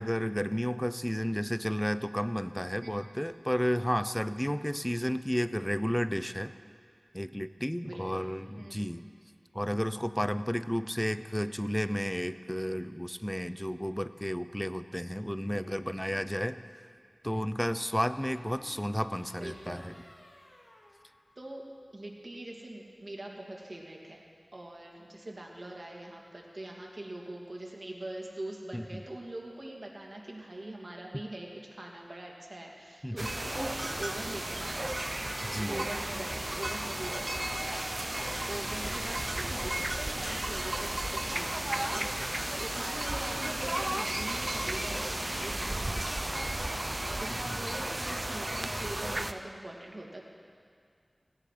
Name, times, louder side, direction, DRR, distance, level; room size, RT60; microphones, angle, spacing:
voice 1, 0.0-6.5 7.1-9.0 9.5-16.6 17.2-19.9 28.7-29.0 33.0-33.3 35.4-35.9 47.3-47.6, equal, 5° left, 12 dB, 0.6 m, -32 dB
voice 2, 7.8-8.2 8.5-8.9 15.5-15.8 19.4-19.8 21.4-21.6 21.9-24.2 24.5-37.8 38.1-42.1 42.5-46.3 46.7-50.2, right 1 dB, 60° right, -1 dB, 2.6 m, -43 dB
sound 1, 15.8-16.3 18.2-21.8, left 1 dB, 55° left, 2.3 m, -55 dB
sound 2, 33.2-49.3, right 1 dB, 35° right, 0.8 m, -34 dB
16.5 x 16.5 x 5.0 m, 2.2 s
wide cardioid pair, 45°, 0 cm